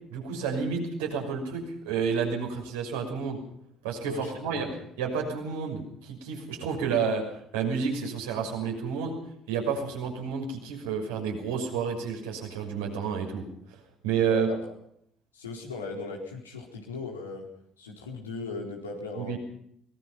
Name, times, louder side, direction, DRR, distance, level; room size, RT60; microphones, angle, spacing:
voice 1, 0.1-3.4 3.8-4.7 5.0-7.2 7.5-9.1 9.5-13.4 14.0-14.5 19.1-19.4, right 6 dB, 75° right, 0 dB, 6.2 m, -30 dB
voice 2, 4.1-4.9 14.3-14.6 15.3-17.5 17.8-19.4, left 3 dB, 90° left, 0 dB, 4.2 m, -38 dB
24.0 x 19.5 x 5.8 m, 0.72 s
hypercardioid pair, 50°, 0 cm